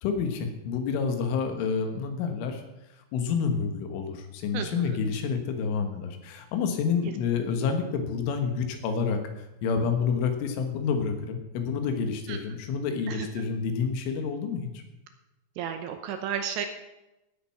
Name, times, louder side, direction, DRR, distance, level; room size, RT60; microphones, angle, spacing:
voice 1, 0.0-2.6 3.1-14.8, left 6 dB, 80° left, 6 dB, 3.9 m, -29 dB
voice 2, 4.5-5.0 12.3-12.4 13.1-13.3 15.6-16.7, right 8 dB, 80° right, 7 dB, 2.8 m, -33 dB
16.5 x 8.8 x 6.0 m, 0.97 s
omnidirectional pair, 5.7 m